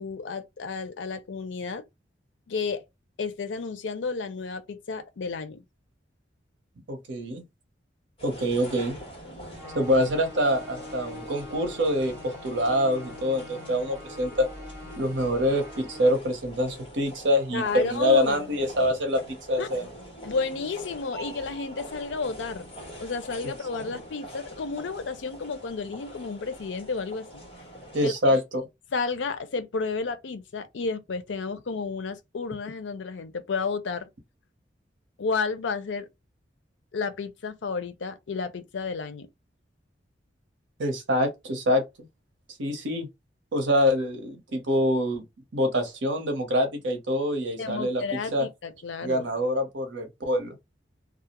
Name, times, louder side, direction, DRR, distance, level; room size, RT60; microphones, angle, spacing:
voice 1, 0.0-1.8 2.5-2.8 3.2-5.6 17.5-18.4 18.8-18.9 19.6-19.7 20.2-22.6 23.0-27.4 28.0-28.3 28.9-34.1 35.2-36.1 36.9-39.3 47.6-49.2, left 4 dB, 80° left, 0.5 m, -32 dB
voice 2, 6.9-7.4 8.2-9.0 9.7-14.5 15.0-19.9 23.9-24.0 27.9-28.6 40.8-41.8 42.6-43.1 43.5-45.2 45.5-48.5 49.0-50.6, equal, 85° right, 0.8 m, -25 dB
sound 1, 8.2-28.1, equal, 30° left, 1.2 m, -44 dB
sound 2, 9.5-16.1, left 3 dB, 15° right, 0.8 m, -44 dB
2.4 x 2.0 x 2.9 m
head